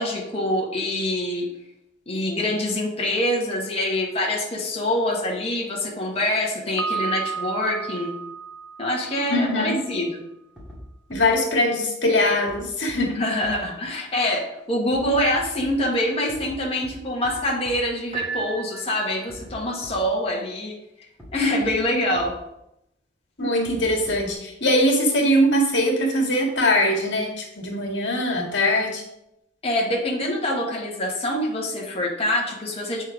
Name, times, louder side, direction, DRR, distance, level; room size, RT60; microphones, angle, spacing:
voice 1, 0.0-1.5 2.1-8.1 8.8-10.1 13.0-20.7 21.3-22.3 29.6-33.0, left 1 dB, 35° left, -2 dB, 1.5 m, -25 dB
Piano, 6.8-9.7, right 6 dB, 85° right, 0.6 m, -32 dB
voice 2, 9.3-9.8 11.1-13.1 23.4-29.0, left 1 dB, 70° left, -1 dB, 2.0 m, -21 dB
sound 1, 10.6-10.8 11.1-11.2 12.5-12.6 12.9-13.0 13.4-13.5 14.9-15.7 16.3-16.5 16.8-16.9 17.2-17.3 17.6-17.7 19.3-19.5 19.8-19.9 21.2-21.3 21.6-21.7 22.1-22.2 23.6-24.3, equal, 5° right, 2.1 m, -42 dB
Piano 2, 18.1-19.4, right 5 dB, 35° right, 1.1 m, -33 dB
8.1 x 4.4 x 5.0 m, 0.85 s
head